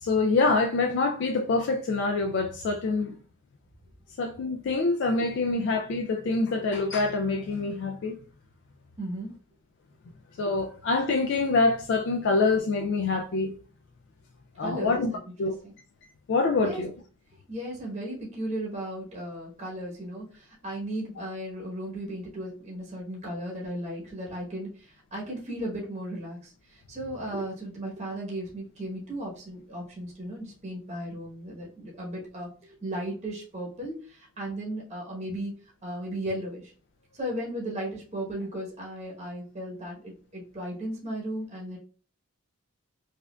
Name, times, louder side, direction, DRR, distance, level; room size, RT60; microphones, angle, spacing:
voice 1, 0.0-3.1 4.2-8.1 10.4-13.5 14.6-15.1 15.4-15.6 16.3-16.9, left 3 dB, 55° left, 0.3 m, -25 dB
voice 2, 9.0-9.3 14.6-15.0 15.6-15.7 16.6-16.8 17.5-32.5 32.8-35.5 35.8-36.7 37.1-41.8, right 1 dB, 30° right, 0.9 m, -35 dB
4.8 x 2.4 x 2.2 m
head